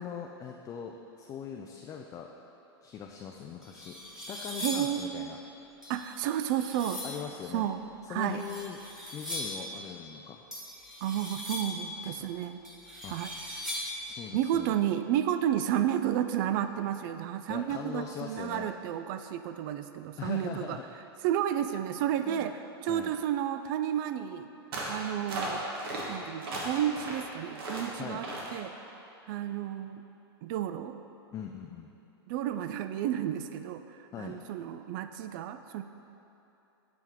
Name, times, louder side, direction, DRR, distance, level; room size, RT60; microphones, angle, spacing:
voice 1, 0.0-2.3 2.8-5.4 7.0-7.7 8.0-8.8 9.1-10.4 12.0-12.3 13.0-13.2 14.0-14.8 17.5-18.7 20.2-20.8 22.2-22.5 22.9-23.1 28.0-28.2 31.3-31.9 34.1-34.4, left 7 dB, 25° left, 2 dB, 0.3 m, -41 dB
sound 1, 3.1-3.2 3.6-5.0 5.8-7.2 8.2-9.7 10.5-11.9 12.6-14.1, left 1 dB, 5° right, 1.4 m, -39 dB
voice 2, 4.6-5.4 5.9-7.0 7.5-7.8 8.1-8.5 11.0-12.6 13.1-13.3 14.3-20.8 21.2-24.5 24.9-25.6 26.1-28.8 29.3-30.0 30.4-31.0 32.3-33.8 34.2-35.8, right 11 dB, 55° right, 10 dB, 0.4 m, -31 dB
sound 2, 24.7-25.0 25.3-26.0 26.4-27.2 27.5-27.9 28.2-28.5, right 2 dB, 70° right, 1.3 m, -36 dB
7.8 x 3.5 x 4.6 m, 2.9 s
hypercardioid pair, 115°, 13 cm